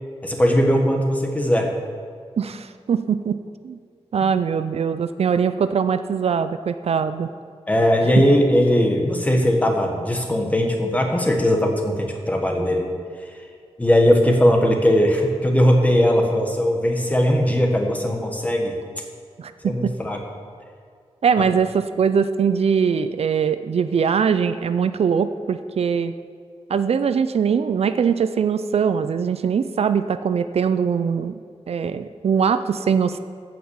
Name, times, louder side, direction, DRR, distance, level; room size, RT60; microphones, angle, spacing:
voice 1, 0.2-1.7 4.2-4.3 7.7-12.9 13.3-13.4 13.8-18.8 19.6-20.2, equal, 15° left, 2 dB, 1.4 m, -19 dB
voice 2, 2.4-3.4 3.6-3.8 4.1-7.3 19.4-19.9 21.2-26.1 26.7-31.4 31.7-33.2, right 6 dB, 70° right, 11 dB, 0.5 m, -21 dB
15.0 x 5.9 x 7.1 m, 2.1 s
wide cardioid pair, 155°, 11 cm